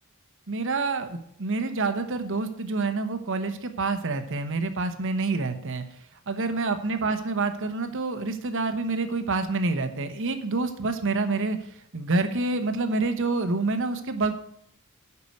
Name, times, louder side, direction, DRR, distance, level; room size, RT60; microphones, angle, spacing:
voice 1, 0.5-5.8 6.3-11.6 11.9-14.3, right 3 dB, 60° right, 8 dB, 1.1 m, -27 dB
8.6 x 5.9 x 7.9 m, 0.70 s
head